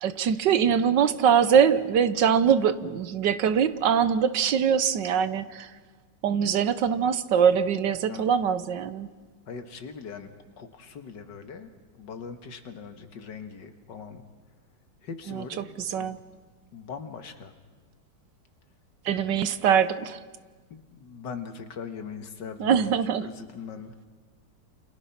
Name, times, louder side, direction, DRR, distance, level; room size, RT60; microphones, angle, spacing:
voice 1, 0.0-5.7 6.2-9.1 15.3-15.4 15.8-16.2 19.0-20.2 22.6-23.3, right 7 dB, 70° right, 13 dB, 1.5 m, -23 dB
voice 2, 9.5-10.3 10.6-14.2 15.0-16.1 16.7-17.5 19.1-19.5 20.7-23.9, left 6 dB, 70° left, 8 dB, 2.1 m, -41 dB
29.0 x 28.0 x 5.8 m, 1.4 s
omnidirectional pair, 2.0 m